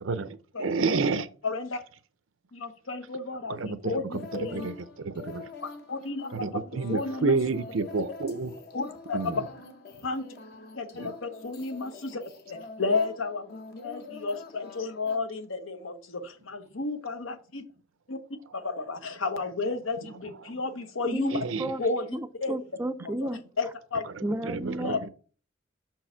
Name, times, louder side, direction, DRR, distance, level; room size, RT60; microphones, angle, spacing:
voice 1, 0.0-1.3 3.5-4.0 4.5-4.7 5.0-5.4 6.3-8.5 9.1-9.4 11.0-11.1 21.3-21.7 24.4-25.1, right 4 dB, 90° right, 0.6 m, -29 dB
voice 2, 0.5-1.0 1.4-1.8 2.5-4.7 5.6-6.6 6.9-7.4 8.7-9.4 10.0-10.3 10.8-12.2 12.5-17.7 18.1-21.4 21.8-22.6 23.6-24.1 24.8-25.0, left 3 dB, 90° left, 1.0 m, -32 dB
sound 1, 4.1-15.2, left 3 dB, 55° left, 0.9 m, -45 dB
voice 3, 21.0-21.8 22.1-23.4 24.2-25.1, right 1 dB, 10° right, 0.4 m, -33 dB
6.1 x 4.6 x 4.4 m
head